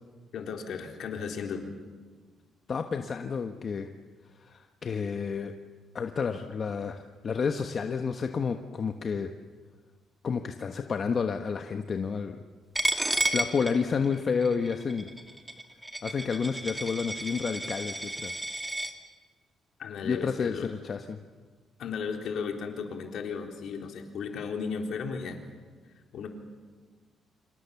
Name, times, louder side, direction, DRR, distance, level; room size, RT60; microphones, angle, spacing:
voice 1, 0.3-1.7 19.8-20.7 21.8-25.4 26.1-26.3, left 6 dB, 70° left, 3 dB, 4.0 m, -35 dB
voice 2, 2.7-3.9 4.4-5.5 5.9-9.3 10.2-12.4 13.3-15.1 16.0-18.4 20.0-21.2, left 5 dB, 45° left, 6 dB, 1.3 m, -30 dB
Coin (dropping), 12.7-18.9, right 1 dB, 10° right, 2.1 m, -32 dB
29.5 x 26.0 x 7.2 m, 1.4 s
cardioid pair, 90°, 0 cm